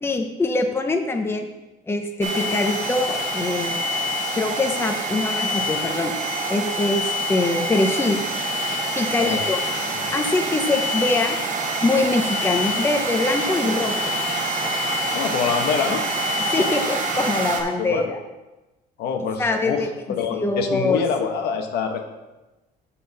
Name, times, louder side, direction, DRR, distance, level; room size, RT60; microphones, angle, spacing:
voice 1, 0.0-1.5 1.9-3.8 4.3-6.1 6.5-8.2 9.0-9.6 10.1-11.4 11.8-14.1 16.5-18.2 19.4-19.9 20.3-21.0, left 2 dB, 15° left, 4 dB, 0.7 m, -23 dB
sound 1, 2.2-17.6, right 1 dB, 50° right, 1.2 m, -26 dB
voice 2, 9.1-9.4 9.9-10.1 15.1-16.0 17.8-18.0 19.0-22.1, left 6 dB, 75° left, 4 dB, 1.0 m, -25 dB
6.2 x 5.7 x 5.3 m, 1.1 s
cardioid pair, 110°, 17 cm